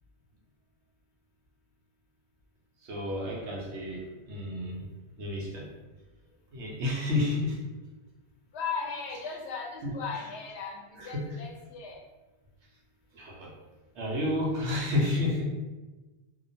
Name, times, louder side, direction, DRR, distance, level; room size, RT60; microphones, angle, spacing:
voice 1, 2.8-4.9 5.2-5.7 6.5-7.6 9.8-10.0 11.0-11.4 13.1-13.6 14.0-15.5, left 2 dB, 85° right, -2 dB, 1.0 m, -31 dB
voice 2, 8.5-10.8 11.0-12.0, left 5 dB, 85° left, 0 dB, 0.9 m, -37 dB
2.4 x 2.2 x 2.6 m, 1.2 s
omnidirectional pair, 1.1 m